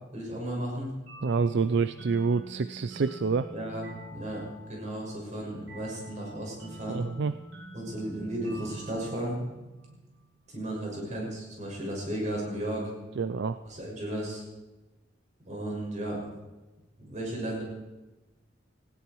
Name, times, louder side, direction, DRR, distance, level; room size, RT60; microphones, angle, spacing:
voice 1, 0.1-0.9 3.5-7.0 7.7-9.4 10.5-12.9 13.6-14.4 15.5-16.2 17.0-17.6, right 1 dB, 40° right, -2 dB, 6.5 m, -34 dB
sound 1, 1.1-10.4, right 2 dB, 80° right, 7.6 m, -46 dB
voice 2, 1.2-3.5 6.9-7.3 13.2-13.6, right 4 dB, 65° right, 13 dB, 0.5 m, -27 dB
19.0 x 16.5 x 4.7 m, 1.1 s
head